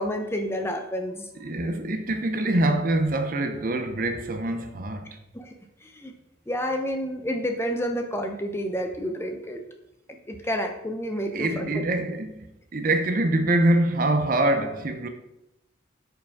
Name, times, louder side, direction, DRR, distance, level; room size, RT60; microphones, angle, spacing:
voice 1, 0.0-1.3 5.3-5.5 5.8-6.1 6.5-9.6 10.1-11.7, equal, 15° left, 0.6 m, -29 dB
voice 2, 1.4-5.1 11.3-12.4 12.7-15.1, right 1 dB, 45° right, 0.6 m, -24 dB
8.9 x 5.1 x 3.5 m
head